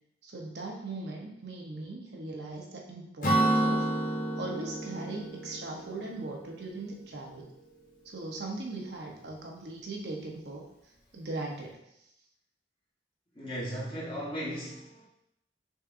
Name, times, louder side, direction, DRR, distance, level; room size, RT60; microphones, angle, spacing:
voice 1, 0.2-3.9 4.4-7.5 8.0-10.6 11.1-11.8, right 2 dB, 65° right, 0 dB, 0.8 m, -39 dB
Acoustic guitar / Strum, 3.2-6.9, right 1 dB, 45° left, 0.9 m, -30 dB
voice 2, 13.3-15.1, equal, 25° left, -5 dB, 1.2 m, -36 dB
5.6 x 3.7 x 2.6 m, 0.79 s
head